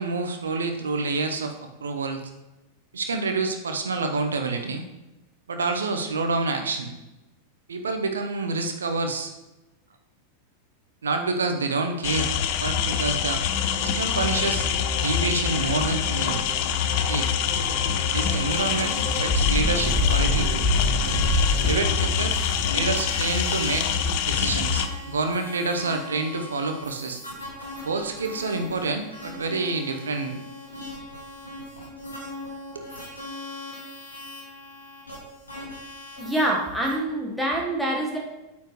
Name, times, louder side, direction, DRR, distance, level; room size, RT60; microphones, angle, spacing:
voice 1, 0.0-2.2 2.9-4.9 5.5-6.9 7.7-9.3 11.0-12.3 12.6-13.4 13.8-14.7 15.0-16.4 17.0-17.3 18.1-20.6 21.6-22.4 22.7-27.2 27.8-30.4 32.7-32.9, right 3 dB, 70° right, 6 dB, 0.8 m, -28 dB
sound 1, 12.0-24.9, left 8 dB, 45° left, 0.6 m, -25 dB
sound 2, 13.6-21.8, left 2 dB, 15° left, 2.3 m, -28 dB
sound 3, 17.9-18.1 18.5-19.2 19.7-37.0, left 1 dB, 75° left, 2.9 m, -40 dB
voice 2, 36.2-38.2, right 1 dB, 5° right, -2 dB, 1.3 m, -25 dB
8.8 x 7.4 x 3.1 m, 1.0 s
figure-of-eight pair, 90°, 0 cm